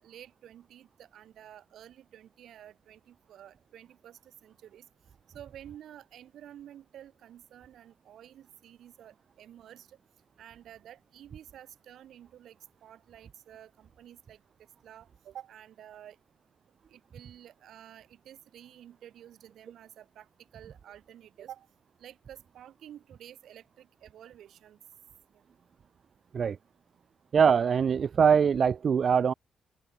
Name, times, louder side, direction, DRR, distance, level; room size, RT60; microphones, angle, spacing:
voice 1, 0.0-4.9 5.3-10.0 10.4-14.4 14.8-16.2 16.9-20.3 20.5-21.7 22.0-24.8 25.3-25.4, right 11 dB, 85° right, 4.4 m, -51 dB
voice 2, 27.3-29.3, right 7 dB, 55° right, 0.4 m, -23 dB
open air
cardioid pair, 90°, 0 cm